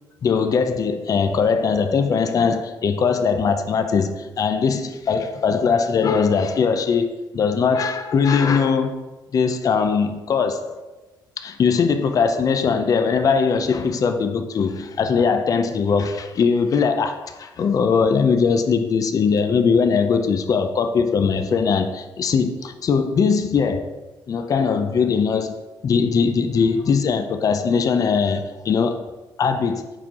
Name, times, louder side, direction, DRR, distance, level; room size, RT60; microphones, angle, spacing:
voice 1, 0.2-9.0 9.3-10.8 11.4-23.9 24.3-25.6 25.8-29.0 29.4-29.8, left 5 dB, 45° left, 7 dB, 0.5 m, -20 dB
5.9 x 4.6 x 3.7 m, 1.1 s
cardioid pair, 100°, 8 cm